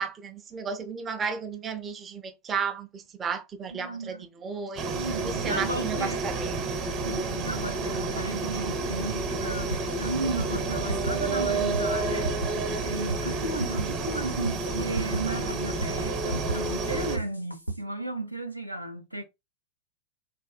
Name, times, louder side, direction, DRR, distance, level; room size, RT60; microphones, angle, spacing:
voice 1, 0.0-6.6, right 6 dB, 20° right, 0.5 m, -34 dB
voice 2, 3.7-4.3 5.0-6.2 7.0-19.2, right 2 dB, 90° right, 0.5 m, -34 dB
sound 1, 4.8-17.2, right 3 dB, 40° right, 0.9 m, -30 dB
sound 2, 9.7-17.8, right 2 dB, 90° left, 0.5 m, -34 dB
3.3 x 2.6 x 2.2 m
figure-of-eight pair, 90°, 0 cm